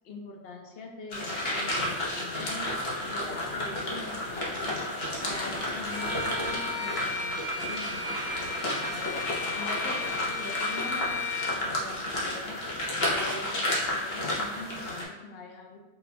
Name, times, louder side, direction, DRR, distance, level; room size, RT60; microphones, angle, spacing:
voice 1, 0.0-2.7 3.1-4.9 5.2-15.8, left 3 dB, 65° left, 2 dB, 0.6 m, -43 dB
sound 1, 1.1-15.0, left 1 dB, 50° left, 0.9 m, -31 dB
Bowed string instrument, 5.9-11.6, left 4 dB, 60° right, 1.0 m, -35 dB
4.2 x 2.2 x 4.0 m, 1.2 s
omnidirectional pair, 1.6 m